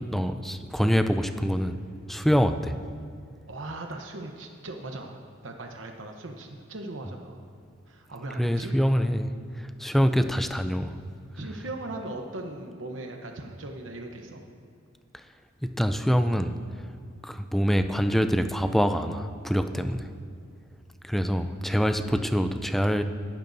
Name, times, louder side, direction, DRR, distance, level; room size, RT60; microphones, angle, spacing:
voice 1, 0.1-1.8 2.1-2.7 8.4-9.3 9.6-10.9 15.6-16.6 17.2-20.1 21.0-23.0, equal, ahead, 8 dB, 0.4 m, -25 dB
voice 2, 3.5-7.5 7.9-8.7 11.4-14.4, right 2 dB, 70° right, 3 dB, 1.0 m, -38 dB
19.5 x 12.0 x 2.7 m, 2.3 s
head